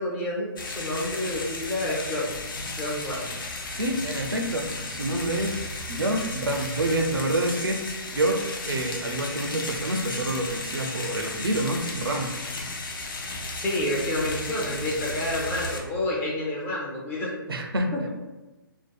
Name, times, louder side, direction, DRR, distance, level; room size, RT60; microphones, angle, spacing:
voice 1, 0.0-2.4 2.8-3.3 13.5-17.3, left 1 dB, 15° left, -4 dB, 0.5 m, -29 dB
sound 1, 0.6-15.8, left 2 dB, 65° left, 0.5 m, -34 dB
voice 2, 3.7-5.6 5.9-12.3 17.5-18.1, right 1 dB, 90° right, 4 dB, 0.4 m, -27 dB
2.6 x 2.1 x 2.2 m, 1.1 s
figure-of-eight pair, 140°, 12 cm